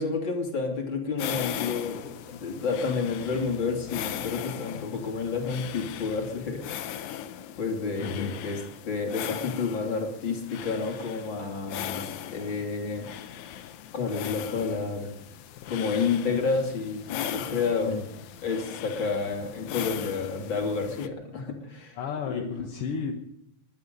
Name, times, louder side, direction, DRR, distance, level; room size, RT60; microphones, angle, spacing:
voice 1, 0.0-6.9 7.6-13.3 13.9-15.1 15.7-18.0 18.4-22.0 22.3-22.6, left 4 dB, 40° left, 2 dB, 3.5 m, -30 dB
sound 1, 1.2-21.1, left 10 dB, 75° left, 2.2 m, -38 dB
voice 2, 8.0-8.3 17.9-18.0 22.0-23.1, left 5 dB, 55° left, 3 dB, 1.9 m, -32 dB
22.0 x 12.0 x 5.4 m, 0.82 s
omnidirectional pair, 3.5 m